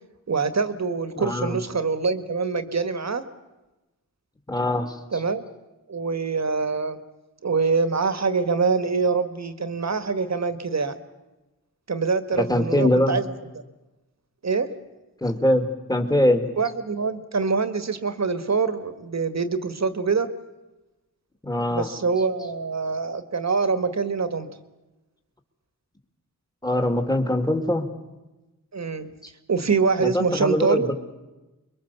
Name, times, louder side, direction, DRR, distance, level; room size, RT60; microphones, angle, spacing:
voice 1, 0.3-3.2 5.1-5.5 5.9-7.0 7.4-11.0 11.9-13.2 14.4-14.7 16.6-20.3 21.7-24.5 28.7-29.1 29.5-30.9, right 4 dB, 55° right, 10 dB, 1.8 m, -24 dB
voice 2, 1.1-1.6 4.5-5.0 12.4-13.2 15.2-16.5 21.4-21.9 26.6-27.9 30.0-30.9, left 1 dB, 10° left, 5 dB, 2.6 m, -22 dB
24.0 x 22.0 x 7.1 m, 1.1 s
cardioid pair, 50°, 33 cm